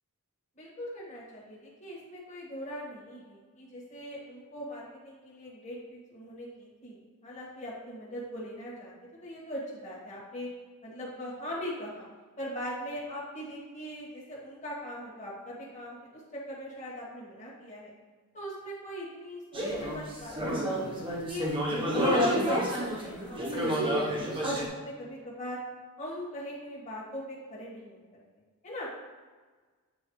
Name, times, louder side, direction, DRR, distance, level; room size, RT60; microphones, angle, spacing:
voice 1, 0.6-8.9 9.2-10.5 10.8-12.1 12.4-17.9 18.3-21.5 21.9-25.6 26.0-28.0 28.6-28.9, equal, 35° left, -6 dB, 1.8 m, -41 dB
sound 1, 19.5-24.7, equal, 25° right, 1.0 m, -29 dB
8.9 x 4.0 x 3.2 m, 1.4 s
head